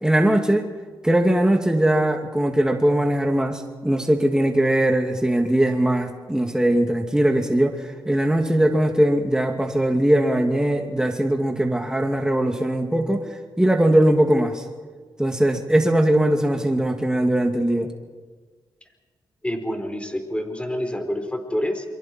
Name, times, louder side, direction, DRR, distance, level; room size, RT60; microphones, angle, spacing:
voice 1, 0.0-0.7 1.0-13.2 13.6-14.6 15.2-17.9, right 1 dB, 5° right, 3 dB, 2.6 m, -20 dB
voice 2, 19.4-21.8, equal, 15° left, 6 dB, 4.3 m, -27 dB
28.0 x 23.5 x 4.6 m, 1.5 s
cardioid pair, 50°, 9 cm